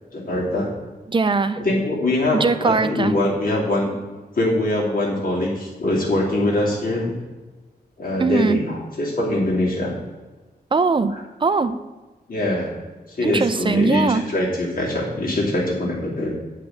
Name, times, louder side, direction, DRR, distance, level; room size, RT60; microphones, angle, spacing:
voice 1, 0.1-0.7 1.6-3.9 4.3-7.2 8.0-9.9 11.1-11.2 12.3-12.7 13.1-16.3, left 1 dB, 55° left, -3 dB, 2.8 m, -23 dB
voice 2, 1.1-1.6 2.3-3.2 8.2-8.6 10.7-11.1 11.4-11.7 13.2-14.2, right 4 dB, 30° right, 11 dB, 0.5 m, -20 dB
8.3 x 5.1 x 7.5 m, 1.2 s
wide cardioid pair, 130°, 17 cm